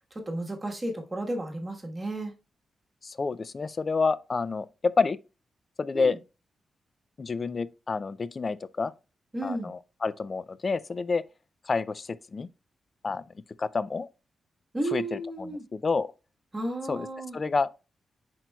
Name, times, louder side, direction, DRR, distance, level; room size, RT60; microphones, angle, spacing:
voice 1, 0.1-2.3 5.9-6.2 9.3-9.7 14.7-15.6 16.5-17.4, right 1 dB, 20° right, 1.4 m, -33 dB
voice 2, 3.0-5.2 5.8-6.2 7.2-8.9 9.4-11.2 11.6-12.5 13.0-13.2 13.6-14.1 14.9-16.1 16.9-17.1 17.3-17.7, left 4 dB, 35° left, 0.4 m, -29 dB
10.0 x 4.5 x 2.3 m
wide cardioid pair, 145°, 0 cm